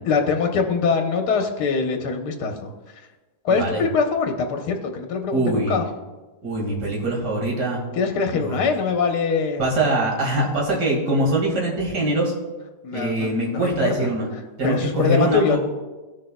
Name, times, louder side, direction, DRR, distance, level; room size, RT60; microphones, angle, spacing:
voice 1, 0.1-2.7 3.4-5.8 7.9-9.7 12.8-14.1 14.6-15.6, left 5 dB, 80° left, 4 dB, 1.4 m, -23 dB
voice 2, 3.5-3.8 5.3-5.8 6.4-7.8 8.3-8.6 9.6-12.3 12.9-14.3 14.6-15.6, right 1 dB, 85° right, -2 dB, 2.5 m, -23 dB
16.0 x 6.5 x 2.2 m, 1.2 s
omnidirectional pair, 1.8 m